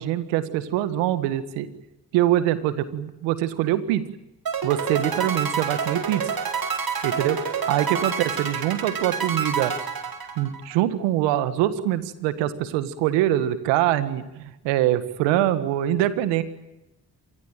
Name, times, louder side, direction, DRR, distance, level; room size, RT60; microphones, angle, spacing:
voice 1, 0.0-1.7 2.1-4.1 4.6-6.3 7.0-7.4 7.7-9.7 10.4-16.4, right 13 dB, 90° right, 13 dB, 1.8 m, -24 dB
sound 1, 4.5-10.8, right 6 dB, 55° right, 4.2 m, -28 dB
26.5 x 20.5 x 9.2 m, 0.95 s
hypercardioid pair, 40°, 42 cm